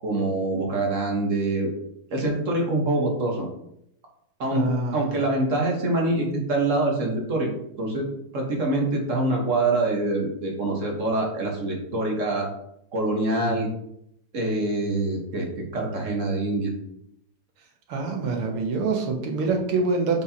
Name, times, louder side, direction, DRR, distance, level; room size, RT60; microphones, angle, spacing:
voice 1, 0.0-1.7 2.1-3.5 4.4-4.7 4.9-7.5 7.8-8.1 8.3-12.5 12.9-13.7 14.3-15.5 15.7-16.7, right 2 dB, 40° right, 0 dB, 1.3 m, -25 dB
voice 2, 4.5-5.2 13.5-13.6 17.9-20.2, right 4 dB, 75° right, 2 dB, 2.0 m, -26 dB
6.4 x 5.6 x 2.8 m, 0.76 s
omnidirectional pair, 2.4 m